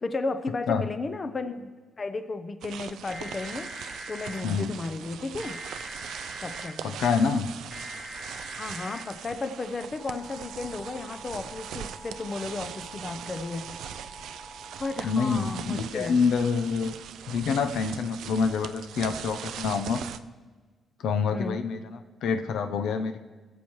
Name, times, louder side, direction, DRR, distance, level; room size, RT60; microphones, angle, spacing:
voice 1, 0.0-1.7 2.0-5.6 6.4-7.0 8.6-13.7 14.8-16.2 21.3-21.6, left 3 dB, 30° left, 9 dB, 0.6 m, -34 dB
sound 1, 2.6-20.2, right 9 dB, 80° right, 0.4 m, -41 dB
sound 2, 3.1-4.4 5.4-6.7 7.7-9.0 10.0-15.6, equal, 5° left, 1.2 m, -44 dB
voice 2, 6.8-7.5 15.0-16.9 17.3-20.0 21.0-23.2, left 5 dB, 80° left, 7 dB, 0.6 m, -27 dB
20.0 x 7.3 x 3.1 m, 1.3 s
cardioid pair, 130°, 0 cm